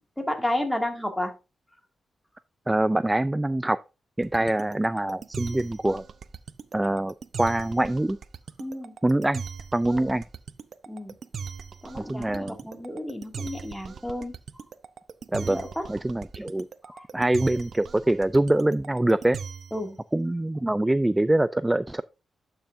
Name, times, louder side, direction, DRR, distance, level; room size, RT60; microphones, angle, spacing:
voice 1, 0.2-1.3 4.4-4.5 8.6-8.9 9.9-10.2 10.9-11.2 11.8-14.3 15.4-15.8 16.8-17.1 19.7-20.0, left 1 dB, 5° left, 2.2 m, -32 dB
voice 2, 2.7-3.8 4.2-6.0 6.7-8.2 9.0-9.4 9.7-10.2 12.0-12.6 15.3-15.6 15.9-16.7 17.1-19.4 20.1-22.0, right 1 dB, 15° right, 0.3 m, -24 dB
sound 1, 4.2-19.9, right 6 dB, 60° right, 0.6 m, -39 dB
11.5 x 5.7 x 2.6 m
cardioid pair, 70°, 0 cm